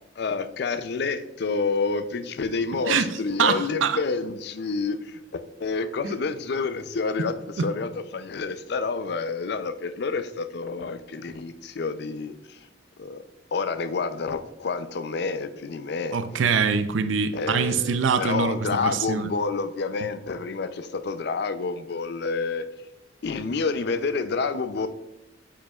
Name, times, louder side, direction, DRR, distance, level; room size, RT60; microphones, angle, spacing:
voice 1, 0.2-12.7 13.0-13.2 13.5-16.2 17.3-22.7 23.2-24.9, left 4 dB, 60° left, 11 dB, 0.4 m, -29 dB
voice 2, 3.4-4.0 6.0-6.1 7.6-7.7 16.1-19.3 20.0-20.1, right 6 dB, 90° right, 10 dB, 0.4 m, -24 dB
8.5 x 5.1 x 2.3 m, 0.91 s
head